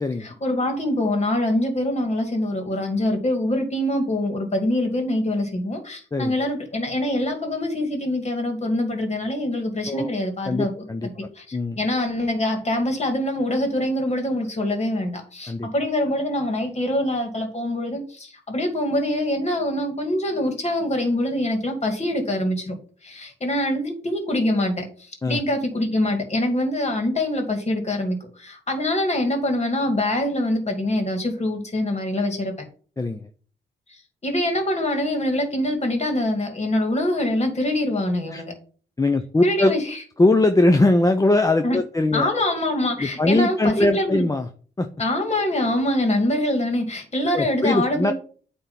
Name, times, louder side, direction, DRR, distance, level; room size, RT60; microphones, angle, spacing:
voice 1, 0.2-10.7 11.0-22.7 23.0-32.5 33.9-38.5 39.4-40.0 41.6-41.8 42.1-44.2 45.0-48.1, left 1 dB, 35° left, 2.6 m, -24 dB
voice 2, 10.5-11.1 11.5-11.8 15.5-15.7 25.2-25.4 33.0-33.2 38.3-38.4 39.0-39.7 40.2-42.3 43.0-44.5 44.8-44.9 47.3-48.1, left 2 dB, 15° left, 0.6 m, -20 dB
8.9 x 3.5 x 5.8 m
cardioid pair, 80°, 20 cm